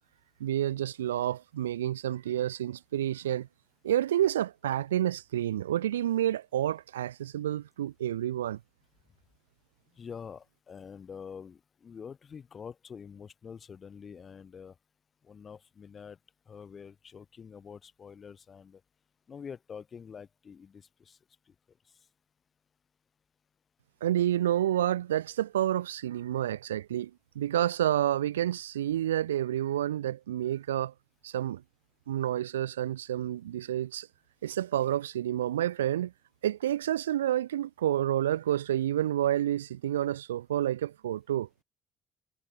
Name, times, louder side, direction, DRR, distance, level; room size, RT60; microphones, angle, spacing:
voice 1, 0.4-3.5 3.8-8.6 24.0-30.9 31.2-31.6 32.1-34.1 34.4-36.1 36.4-41.5, right 12 dB, 90° right, 0.8 m, -29 dB
voice 2, 9.9-14.8 15.2-16.2 16.5-18.8 19.3-21.2 21.5-21.6, left 6 dB, 45° left, 2.8 m, -46 dB
hypercardioid pair, 55°, 0 cm